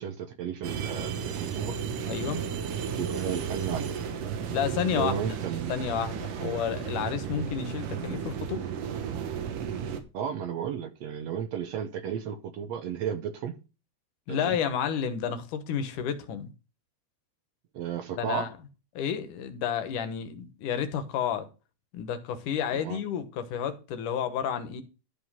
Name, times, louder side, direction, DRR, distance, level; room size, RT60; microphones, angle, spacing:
voice 1, 0.0-1.7 3.0-3.9 4.9-5.7 6.4-6.6 7.3-7.4 10.1-13.5 14.3-14.6 17.7-18.5 22.7-23.0, right 8 dB, 65° right, 1.9 m, -33 dB
sound 1, 0.6-10.0, right 7 dB, 85° right, 2.8 m, -33 dB
voice 2, 2.1-2.4 4.5-5.4 5.7-8.7 14.3-16.5 18.1-18.5 19.0-21.5 21.9-24.8, left 8 dB, 80° left, 2.7 m, -31 dB
12.5 x 5.2 x 5.5 m
omnidirectional pair, 3.7 m